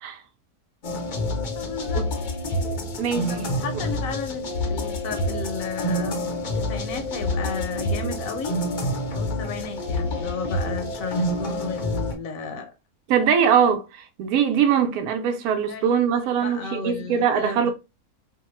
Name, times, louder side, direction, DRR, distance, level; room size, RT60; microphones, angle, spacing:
sound 1, 0.8-12.1, left 1 dB, 55° left, 0.5 m, -27 dB
voice 1, 1.5-2.1 3.3-6.2 6.5-8.5 9.1-12.7 15.7-17.7, left 4 dB, 70° left, 1.0 m, -33 dB
voice 2, 3.0-3.3 13.1-17.7, right 7 dB, 80° right, 1.0 m, -22 dB
2.7 x 2.2 x 3.0 m
omnidirectional pair, 1.6 m